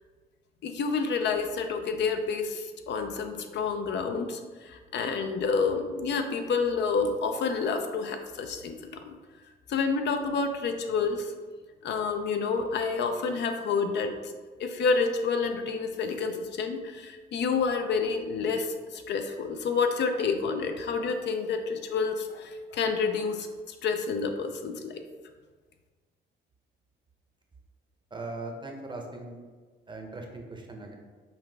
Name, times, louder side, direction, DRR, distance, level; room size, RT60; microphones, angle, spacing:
voice 1, 0.6-9.1 9.7-11.3 11.8-14.3 14.6-25.0, left 5 dB, 60° left, 6 dB, 0.5 m, -29 dB
voice 2, 28.1-29.4 29.9-31.0, right 2 dB, 25° right, 2 dB, 0.7 m, -39 dB
5.6 x 2.3 x 3.3 m, 1.4 s
cardioid pair, 90°, 20 cm